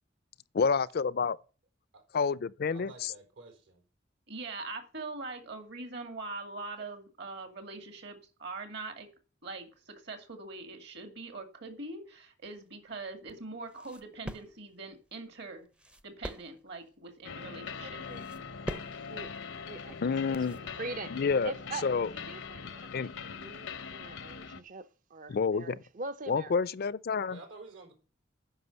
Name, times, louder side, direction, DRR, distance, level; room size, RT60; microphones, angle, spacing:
voice 1, 0.5-1.4 2.1-3.1 20.0-20.6 21.2-21.5 21.8-22.1 22.9-23.1 25.3-25.8 26.3-27.4, left 5 dB, 55° left, 0.4 m, -28 dB
voice 2, 2.7-3.8 27.3-27.9, right 3 dB, 80° right, 4.1 m, -50 dB
voice 3, 4.3-9.1 9.4-15.6 16.0-18.0, right 3 dB, 60° right, 2.2 m, -42 dB
sound 1, 12.4-20.7, equal, 5° right, 0.5 m, -46 dB
sound 2, 17.2-24.6, left 5 dB, 85° left, 0.8 m, -42 dB
voice 4, 17.8-18.3 18.9-19.4 19.6-26.6, right 3 dB, 45° right, 0.7 m, -44 dB
9.6 x 5.8 x 6.9 m
head